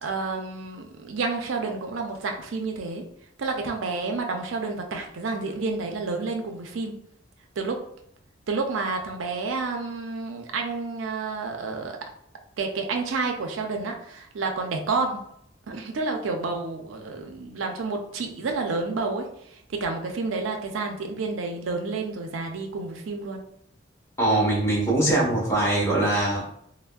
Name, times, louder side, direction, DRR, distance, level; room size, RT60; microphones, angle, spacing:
voice 1, 0.0-3.0 3.4-7.0 7.6-7.8 8.5-12.0 12.6-15.2 15.7-19.3 19.7-23.4, right 3 dB, 85° right, 3 dB, 0.5 m, -29 dB
voice 2, 24.2-26.4, right 2 dB, 15° left, -5 dB, 0.9 m, -22 dB
3.3 x 2.0 x 2.2 m, 0.71 s
head